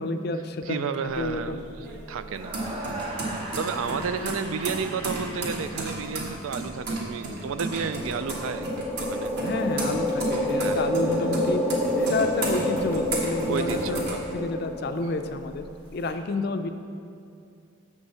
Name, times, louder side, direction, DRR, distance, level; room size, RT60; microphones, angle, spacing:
voice 1, 0.0-0.9 1.2-1.6 9.4-11.6 11.9-16.7, left 2 dB, 50° left, 8 dB, 0.4 m, -29 dB
voice 2, 0.7-3.2 3.5-8.7 9.0-9.3 10.6-10.9 13.5-14.2, right 6 dB, 75° right, 11 dB, 0.4 m, -32 dB
sound 1, 1.1-14.9 15.3-16.1, right 2 dB, 50° right, 1.4 m, -34 dB
sound 2, 2.3-6.5, right 1 dB, 25° right, 0.9 m, -38 dB
sound 3, 7.8-15.4, left 1 dB, 5° right, 0.6 m, -28 dB
6.6 x 5.3 x 6.9 m, 2.5 s
head